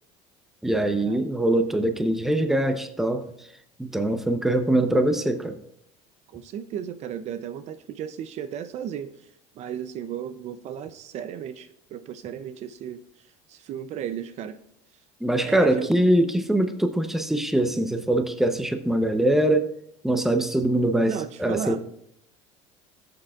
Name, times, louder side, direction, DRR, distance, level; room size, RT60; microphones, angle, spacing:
voice 1, 0.6-3.3 3.8-5.6 15.2-19.7 20.0-21.8, right 1 dB, ahead, 0.8 m, -23 dB
voice 2, 6.3-14.6 15.4-15.9 21.0-21.8, right 9 dB, 50° right, 0.6 m, -35 dB
16.0 x 7.8 x 2.4 m
cardioid pair, 120°, 15 cm